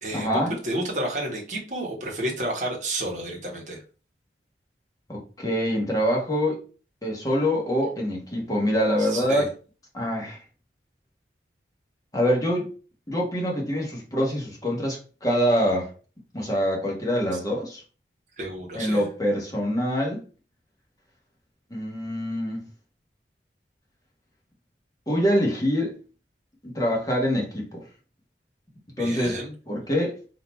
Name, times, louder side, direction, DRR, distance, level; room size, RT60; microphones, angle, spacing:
voice 1, 0.1-0.5 5.1-6.6 7.0-9.5 9.9-10.4 12.1-12.7 13.1-15.9 16.3-17.8 18.7-20.2 21.7-22.6 25.1-26.0 26.7-27.8 29.0-29.4 29.7-30.2, equal, 20° left, 1.3 m, -25 dB
voice 2, 0.6-3.8 9.0-9.5 18.4-19.0 29.0-29.5, right 1 dB, 45° right, 1.3 m, -31 dB
4.1 x 2.8 x 4.4 m
head